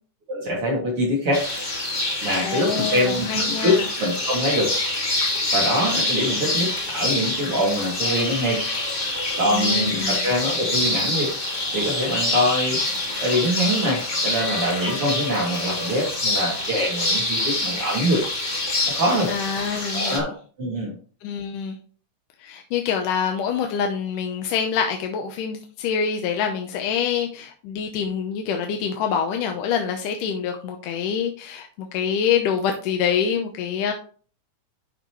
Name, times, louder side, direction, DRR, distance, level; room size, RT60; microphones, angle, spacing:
voice 1, 0.3-1.4 2.2-4.7 5.5-8.6 9.4-11.3 11.7-12.8 13.2-18.2 18.9-19.3 19.9-20.3 20.6-20.9, equal, 45° right, -4 dB, 3.3 m, -24 dB
sound 1, 1.3-20.2, left 2 dB, 30° left, 3.4 m, -26 dB
voice 2, 2.4-3.9 9.5-10.3 19.3-20.3 21.2-21.8 22.4-33.9, left 7 dB, 75° left, 4 dB, 2.4 m, -26 dB
11.5 x 5.9 x 3.1 m, 0.41 s
omnidirectional pair, 3.8 m